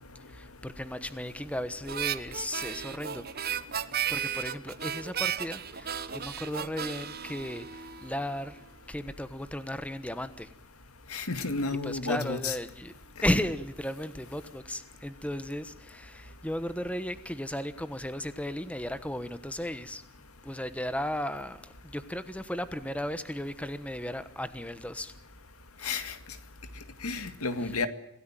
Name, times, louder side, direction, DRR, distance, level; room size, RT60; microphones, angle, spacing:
voice 1, 0.3-3.2 4.1-8.6 8.9-10.5 11.8-12.9 13.2-20.0 20.4-25.1 27.6-27.7, left 1 dB, 5° left, 12 dB, 1.1 m, -35 dB
Harmonica, 1.9-8.4, right 9 dB, 45° right, 1.2 m, -34 dB
voice 2, 11.1-12.6 25.8-26.1 27.0-27.9, left 3 dB, 80° left, 10 dB, 2.2 m, -31 dB
26.0 x 17.5 x 9.0 m, 0.80 s
head